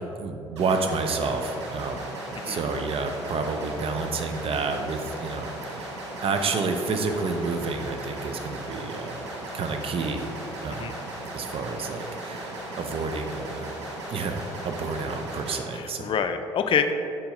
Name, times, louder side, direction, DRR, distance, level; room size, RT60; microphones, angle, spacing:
voice 1, 0.2-2.1 2.4-5.9 6.2-9.2 9.5-10.3 10.6-11.0 11.3-13.7 14.1-16.1, right 4 dB, 40° right, 5 dB, 0.6 m, -29 dB
sound 1, 0.6-15.6, right 1 dB, 80° right, 0.9 m, -37 dB
voice 2, 15.7-16.9, left 6 dB, 40° left, 8 dB, 0.5 m, -26 dB
6.8 x 4.4 x 3.8 m, 2.7 s
figure-of-eight pair, 50°, 14 cm